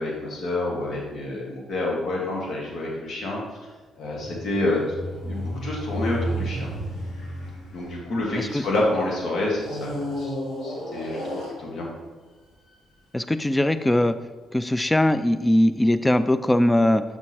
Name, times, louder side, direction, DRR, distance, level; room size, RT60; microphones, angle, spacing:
voice 1, 0.0-3.4 4.0-5.0 5.2-6.7 7.7-10.4 10.6-11.2 11.6-11.9, left 2 dB, 65° left, -3 dB, 1.7 m, -28 dB
sound 1, 4.1-8.8 9.5-12.1 12.8-12.9, equal, 80° left, 2.1 m, -32 dB
voice 2, 13.1-14.1 14.5-17.0, left 1 dB, 10° left, 12 dB, 0.3 m, -20 dB
6.9 x 6.2 x 2.9 m, 1.3 s
cardioid pair, 90°, 0 cm